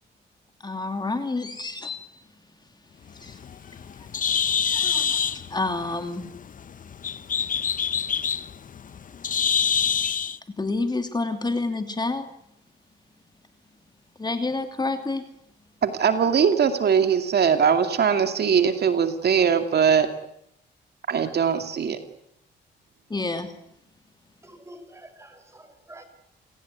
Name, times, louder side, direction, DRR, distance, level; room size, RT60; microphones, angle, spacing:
voice 1, 0.6-2.0 3.2-3.3 4.7-5.2 5.5-6.3 10.6-12.3 14.2-15.2 23.1-23.5, left 3 dB, 20° left, 2.8 m, -28 dB
Bird, 3.1-10.4, left 7 dB, 40° left, 0.9 m, -26 dB
voice 2, 15.8-20.1 21.1-22.0, right 7 dB, 55° right, 2.4 m, -21 dB
voice 3, 24.4-26.0, right 1 dB, 15° right, 5.8 m, -47 dB
29.0 x 18.0 x 9.6 m
cardioid pair, 90°, 20 cm